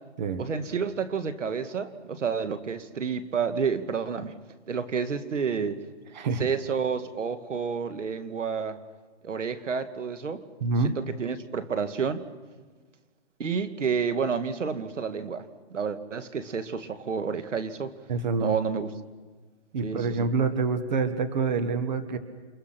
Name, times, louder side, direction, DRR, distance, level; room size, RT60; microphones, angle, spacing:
voice 1, 0.4-4.3 4.7-5.8 6.4-8.8 9.2-10.4 10.8-12.2 13.4-15.4 15.7-17.9 18.4-18.9 19.8-20.3, right 6 dB, 80° right, 11 dB, 2.2 m, -30 dB
voice 2, 6.1-6.4 10.6-11.0 18.1-18.6 19.7-22.2, right 4 dB, 35° right, 10 dB, 1.6 m, -26 dB
29.0 x 29.0 x 6.0 m, 1.4 s
hypercardioid pair, 170°, 36 cm